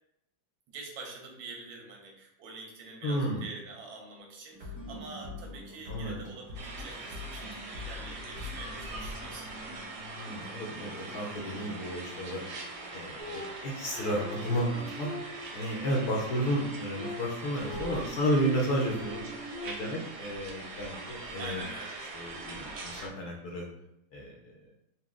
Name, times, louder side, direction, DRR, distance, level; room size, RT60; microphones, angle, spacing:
voice 1, 0.7-9.7 21.4-22.1, right 3 dB, 85° right, 0 dB, 1.6 m, -45 dB
voice 2, 3.0-3.4 5.9-6.1 10.2-12.4 12.9-15.1 15.5-19.2 19.6-21.6 22.1-23.6 24.1-24.6, equal, 65° left, -2 dB, 1.0 m, -32 dB
sound 1, 4.5-13.9, left 3 dB, 45° right, 1.4 m, -46 dB
sound 2, 6.5-23.1, right 2 dB, 70° right, 1.1 m, -42 dB
sound 3, 13.2-15.7 16.2-20.1, left 2 dB, 15° left, 0.3 m, -43 dB
4.2 x 2.3 x 3.5 m, 0.82 s
omnidirectional pair, 2.1 m